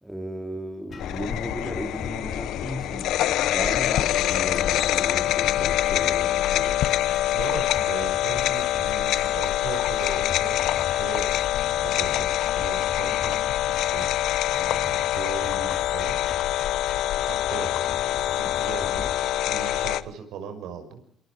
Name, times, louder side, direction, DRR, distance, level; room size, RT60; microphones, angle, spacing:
voice 1, 0.0-6.8, equal, 5° right, 5 dB, 2.8 m, -35 dB
sound 1, 0.9-19.3, left 5 dB, 30° left, 2.5 m, -41 dB
sound 2, 1.0-20.0, left 13 dB, 65° left, 1.0 m, -25 dB
voice 2, 7.3-10.6 10.9-11.3 11.8-14.1 14.4-16.2 17.3-17.7 18.3-19.0 19.5-21.0, right 6 dB, 70° right, 8 dB, 5.7 m, -37 dB
27.5 x 27.5 x 5.0 m, 0.66 s
cardioid pair, 160°, 0 cm